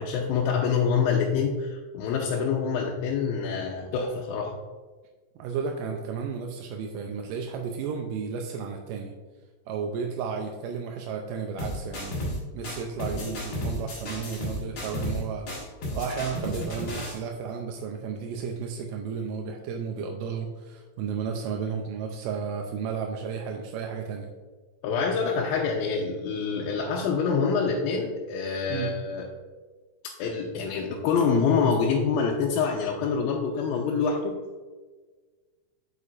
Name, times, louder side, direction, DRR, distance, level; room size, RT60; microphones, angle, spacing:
voice 1, 0.0-4.5 24.8-29.3 30.2-34.4, left 5 dB, 90° left, -1 dB, 2.4 m, -26 dB
voice 2, 5.4-9.1 9.7-12.2 12.5-15.5 15.9-24.3 28.7-28.9, right 6 dB, 80° right, 2 dB, 2.1 m, -33 dB
sound 1, 11.6-12.4 12.6-15.2 15.5-17.2, left 1 dB, 45° left, 2.1 m, -33 dB
8.2 x 6.8 x 2.5 m, 1.4 s
omnidirectional pair, 4.1 m